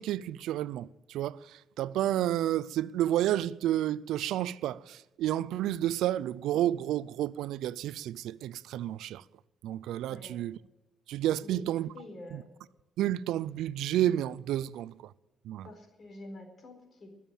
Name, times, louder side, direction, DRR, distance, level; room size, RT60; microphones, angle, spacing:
voice 1, 0.0-9.2 9.6-10.6 11.1-11.9 12.3-12.4 13.0-15.1 15.4-15.7, right 12 dB, 85° right, 0.4 m, -31 dB
voice 2, 11.9-12.5 15.6-17.2, left 2 dB, 45° left, 4.2 m, -47 dB
21.0 x 7.2 x 9.1 m
cardioid pair, 90°, 0 cm